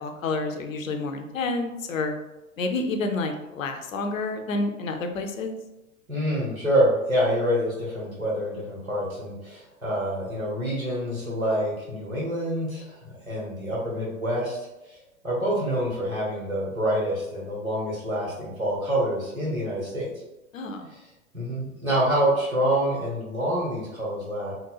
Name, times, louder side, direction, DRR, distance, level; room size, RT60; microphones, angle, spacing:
voice 1, 0.0-2.1 2.6-5.5 20.5-20.8, left 3 dB, 70° left, 5 dB, 0.6 m, -29 dB
voice 2, 6.1-13.0 13.3-14.6 14.9-15.0 15.2-20.1 20.9-21.0 21.3-24.5, equal, 90° right, -6 dB, 1.3 m, -26 dB
3.9 x 2.1 x 2.3 m, 0.98 s
figure-of-eight pair, 100°, 41 cm